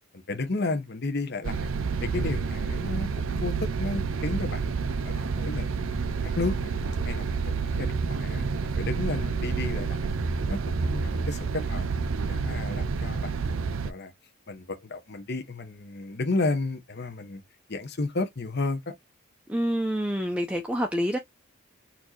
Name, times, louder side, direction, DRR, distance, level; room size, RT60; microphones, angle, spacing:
voice 1, 0.1-1.7 2.0-4.7 5.0-6.6 7.0-10.1 10.5-11.8 12.2-13.3 13.8-14.1 14.5-17.4 17.7-18.9, left 3 dB, 50° left, 0.9 m, -32 dB
sound 1, 1.4-13.9, right 4 dB, 75° right, 0.5 m, -29 dB
voice 2, 19.5-21.2, equal, 5° right, 0.5 m, -27 dB
4.4 x 2.7 x 4.3 m
head